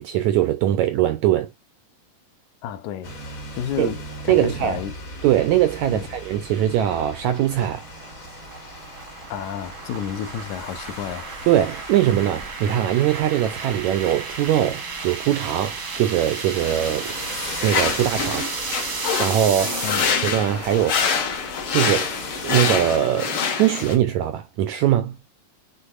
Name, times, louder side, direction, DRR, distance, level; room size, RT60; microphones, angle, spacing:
voice 1, 0.0-1.5 3.8-3.9 4.3-4.8 5.2-7.9 11.5-17.2 17.6-18.5 19.2-19.8 20.1-21.0 21.7-25.2, right 11 dB, 80° right, 1.6 m, -21 dB
voice 2, 2.6-3.2 3.5-4.9 5.9-6.1 9.3-11.3 19.8-20.1, left 9 dB, 70° left, 2.0 m, -31 dB
sound 1, 3.0-23.0, left 2 dB, 35° left, 1.5 m, -39 dB
sound 2, 6.2-20.1, right 5 dB, 55° right, 1.1 m, -34 dB
sound 3, 16.6-23.9, left 6 dB, 50° left, 1.8 m, -26 dB
10.0 x 4.2 x 2.4 m
omnidirectional pair, 4.0 m